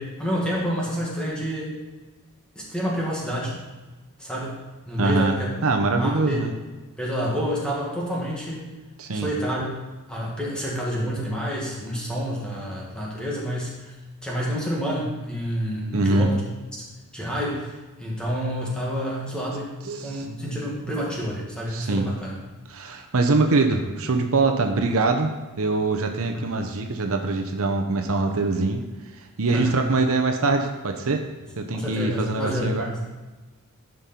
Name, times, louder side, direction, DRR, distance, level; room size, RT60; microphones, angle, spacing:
voice 1, 0.0-1.7 2.6-3.6 4.2-4.6 4.9-5.6 5.9-6.5 7.0-8.7 9.1-9.7 10.1-13.9 14.2-16.4 16.7-16.8 17.1-17.7 18.0-19.8 20.0-22.4 26.3-26.5 29.5-29.9 31.7-33.0, equal, 5° left, -5 dB, 2.1 m, -28 dB
voice 2, 5.0-6.5 9.0-9.3 15.9-16.3 19.8-20.2 21.7-22.1 22.7-25.3 25.6-28.9 29.2-31.2 31.6-32.9, right 3 dB, 65° right, 4 dB, 0.8 m, -23 dB
11.0 x 5.3 x 4.4 m, 1.2 s
head